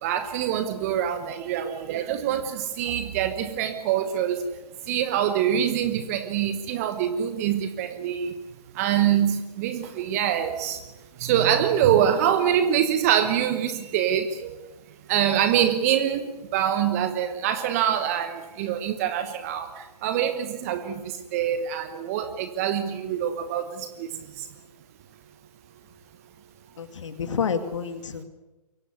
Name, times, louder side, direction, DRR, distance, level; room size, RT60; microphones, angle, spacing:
voice 1, 0.0-4.5 4.8-8.4 8.7-10.8 11.2-14.6 15.1-24.5, right 9 dB, 25° right, 10 dB, 1.1 m, -25 dB
voice 2, 26.8-28.2, left 6 dB, 50° left, 10 dB, 2.3 m, -29 dB
23.0 x 17.0 x 9.4 m, 1.1 s
figure-of-eight pair, 140°, 20 cm